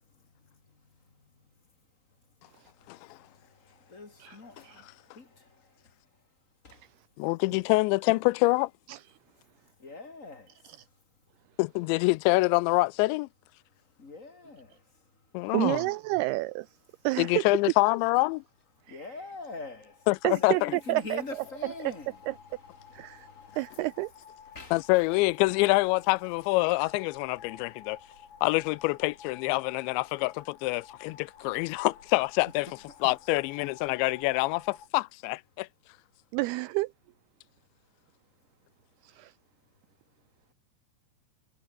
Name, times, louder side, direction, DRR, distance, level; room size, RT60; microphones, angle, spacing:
voice 1, 1.1-1.5 2.5-6.3 6.6-6.9 9.3-11.0 13.7-15.4 18.9-20.1 20.4-23.9 24.5-24.9 32.7-33.0 38.4-38.5, left 3 dB, 25° left, 1.7 m, -46 dB
voice 2, 7.2-8.7 11.6-13.3 15.3-15.8 17.2-18.4 20.1-20.7 24.7-28.0 28.4-32.7 33.0-35.7, left 23 dB, 85° left, 2.9 m, -26 dB
voice 3, 15.5-16.7 17.0-17.4 18.9-19.0 20.2-21.2 22.3-22.4 22.9-23.3 23.6-24.1 36.3-36.9 39.0-39.3, right 21 dB, 85° right, 2.3 m, -29 dB
sound 1, 19.0-34.9, left 7 dB, 55° left, 5.3 m, -52 dB
omnidirectional pair, 5.1 m